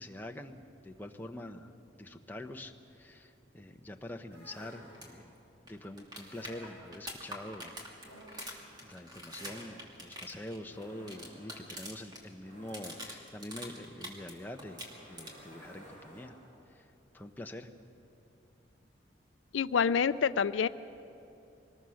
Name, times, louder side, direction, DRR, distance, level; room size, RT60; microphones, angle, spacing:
voice 1, 0.0-5.3 5.6-7.8 8.3-14.8 15.1-16.3 16.7-17.7, left 1 dB, 10° left, 4 dB, 0.8 m, -45 dB
sound 1, 4.3-5.4 6.2-7.2 8.0-16.7, equal, 85° right, 6.4 m, -55 dB
sound 2, 4.9-5.1 5.3-5.4 5.7-12.2 12.5-14.3 14.6-15.5 17.6-17.7, equal, 20° right, 2.6 m, -45 dB
voice 2, 19.5-20.7, left 6 dB, 80° left, 14 dB, 0.4 m, -27 dB
24.0 x 20.0 x 6.4 m, 2.7 s
head